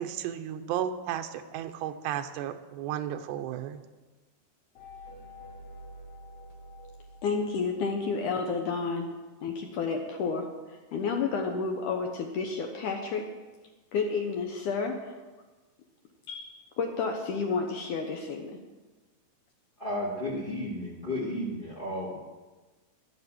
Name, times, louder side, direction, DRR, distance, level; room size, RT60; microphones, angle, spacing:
voice 1, 0.0-3.8, right 10 dB, 85° right, 8 dB, 2.9 m, -34 dB
sound 1, 4.8-8.5, equal, 55° left, 4.4 m, -48 dB
voice 2, 7.2-9.1 9.4-13.3 13.9-15.2 16.3-18.5, left 4 dB, 70° left, 3 dB, 2.0 m, -31 dB
voice 3, 19.8-22.2, left 1 dB, 35° left, -2 dB, 0.8 m, -33 dB
11.5 x 11.0 x 7.7 m, 1.2 s
omnidirectional pair, 4.8 m